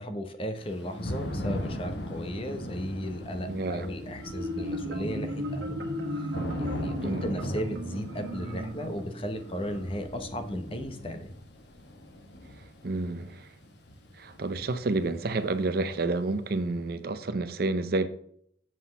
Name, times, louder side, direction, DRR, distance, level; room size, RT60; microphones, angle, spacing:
voice 1, 0.0-5.9 6.2-6.3 6.6-11.3, equal, 30° left, 0.8 m, -35 dB
Thunder / Rain, 0.6-16.3, equal, 65° left, 1.1 m, -40 dB
sound 1, 0.8-10.8, right 1 dB, 10° left, 1.3 m, -47 dB
voice 2, 3.5-3.9 7.0-7.2 12.8-13.5 14.2-18.1, right 2 dB, 55° right, 0.6 m, -29 dB
Marimba xylophone, 4.2-9.8, equal, 70° right, 1.3 m, -35 dB
7.5 x 4.2 x 5.3 m
head